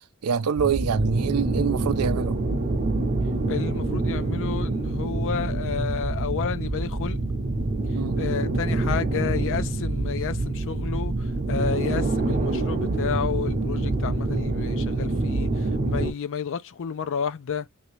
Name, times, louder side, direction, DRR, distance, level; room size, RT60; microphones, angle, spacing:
voice 1, 0.2-2.4 7.9-8.2, right 6 dB, 85° right, 0.5 m, -25 dB
sound 1, 0.6-16.1, right 2 dB, 40° right, 0.7 m, -26 dB
voice 2, 3.5-7.2 8.2-11.1 11.5-17.7, left 7 dB, 60° left, 0.4 m, -31 dB
3.4 x 2.7 x 3.1 m
head